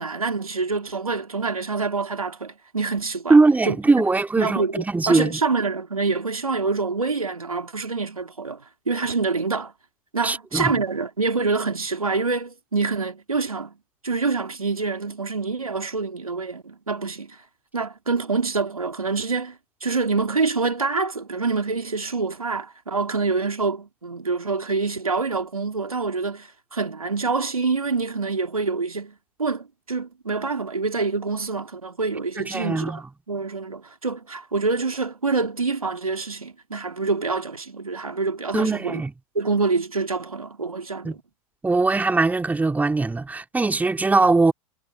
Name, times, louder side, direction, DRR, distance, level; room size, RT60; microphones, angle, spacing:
voice 1, 0.0-3.4 3.7-3.8 4.4-9.7 10.1-13.7 14.0-17.4 17.7-33.0 33.3-39.0 39.3-41.2, right 4 dB, 90° right, 2.8 m, -26 dB
voice 2, 3.3-5.4 10.2-10.7 32.4-33.0 38.5-39.1 41.0-41.2 41.6-44.5, right 3 dB, 10° right, 4.0 m, -20 dB
figure-of-eight pair, 100°, 18 cm